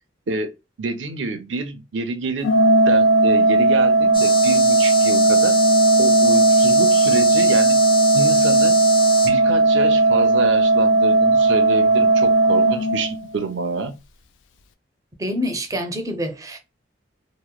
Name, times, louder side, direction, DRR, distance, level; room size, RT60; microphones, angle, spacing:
voice 1, 0.8-2.5 2.8-5.6 6.0-7.8 8.1-8.8 9.2-14.0, right 3 dB, 70° right, 0.6 m, -27 dB
Organ, 2.4-13.5, right 2 dB, 75° left, 0.4 m, -16 dB
sound 1, 4.1-9.3, left 4 dB, 25° left, 0.7 m, -27 dB
voice 2, 15.2-16.6, equal, 20° right, 0.5 m, -26 dB
2.8 x 2.1 x 2.2 m
head